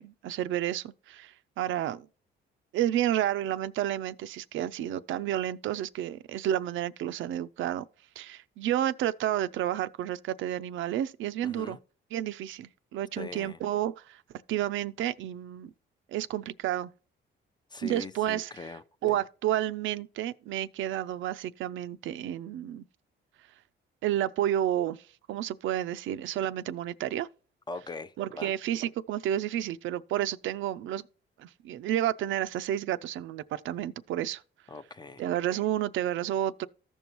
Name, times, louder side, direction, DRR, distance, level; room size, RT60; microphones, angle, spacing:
voice 1, 0.0-2.1 2.7-7.9 8.2-11.8 12.1-14.2 14.5-15.7 16.1-16.9 17.8-18.5 19.0-22.8 24.0-25.0 25.3-27.3 28.2-31.1 31.4-34.4 35.2-36.7, right 12 dB, 80° right, 0.5 m, -31 dB
voice 2, 11.4-11.8 13.2-13.6 17.7-18.8 19.1-19.2 27.7-28.5 34.7-35.3, left 3 dB, 20° left, 0.6 m, -41 dB
14.5 x 5.4 x 3.0 m
cardioid pair, 90°, 20 cm